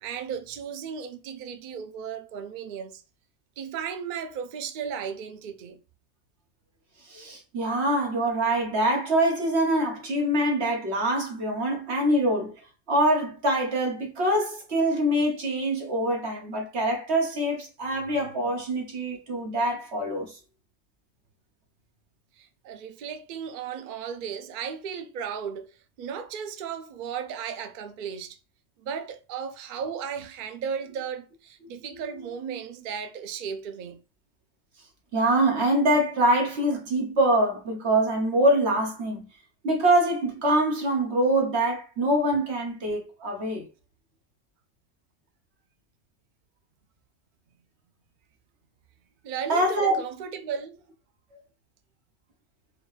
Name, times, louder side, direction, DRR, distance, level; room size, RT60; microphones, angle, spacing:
voice 1, 0.0-3.0 3.6-5.8 22.4-28.4 28.8-34.0 49.2-50.8, right 7 dB, 75° right, 0.4 m, -35 dB
voice 2, 7.1-12.5 12.9-20.4 35.1-39.3 39.6-43.6 49.5-49.9, right 1 dB, 55° right, 1.4 m, -24 dB
4.6 x 2.2 x 3.1 m
omnidirectional pair, 1.4 m